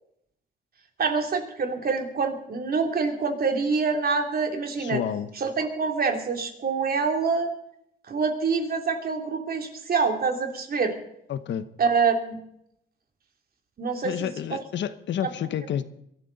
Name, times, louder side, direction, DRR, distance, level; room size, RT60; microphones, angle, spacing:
voice 1, 1.0-5.0 5.4-7.5 8.1-11.0 11.8-12.4 13.8-14.6 15.2-15.3, right 5 dB, 50° right, 4 dB, 3.0 m, -26 dB
voice 2, 4.8-5.3 11.3-11.7 14.0-15.8, left 9 dB, 65° left, 13 dB, 1.0 m, -29 dB
22.5 x 13.0 x 4.0 m, 0.74 s
cardioid pair, 90°, 20 cm